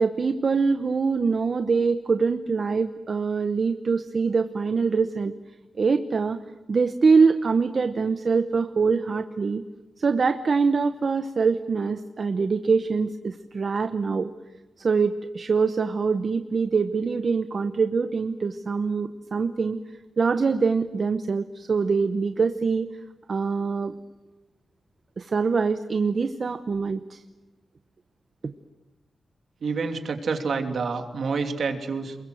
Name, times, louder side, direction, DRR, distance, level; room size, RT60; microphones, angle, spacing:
voice 1, 0.0-5.3 5.8-6.4 6.7-9.6 10.0-14.3 14.8-19.8 20.2-22.9 23.3-23.9 25.2-27.2 28.4-28.5, right 5 dB, 50° right, 9 dB, 0.9 m, -24 dB
voice 2, 29.6-32.2, right 4 dB, 65° right, 4 dB, 3.0 m, -28 dB
28.5 x 22.0 x 7.9 m, 1.1 s
wide cardioid pair, 130°, 0 cm